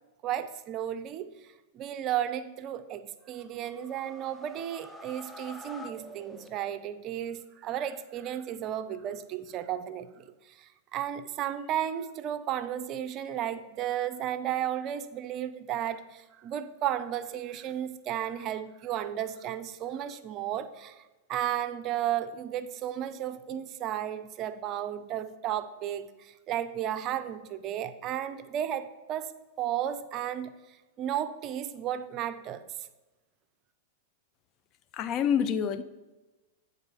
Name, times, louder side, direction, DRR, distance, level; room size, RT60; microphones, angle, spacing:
voice 1, 0.2-1.3 1.7-21.0 21.3-30.5 31.0-32.6, right 11 dB, 40° right, 0.5 m, -34 dB
sound 1, 3.2-7.0, left 1 dB, 5° left, 0.7 m, -48 dB
voice 2, 34.9-35.8, left 8 dB, 40° left, 0.4 m, -27 dB
8.0 x 4.1 x 5.4 m
hypercardioid pair, 110°, 0 cm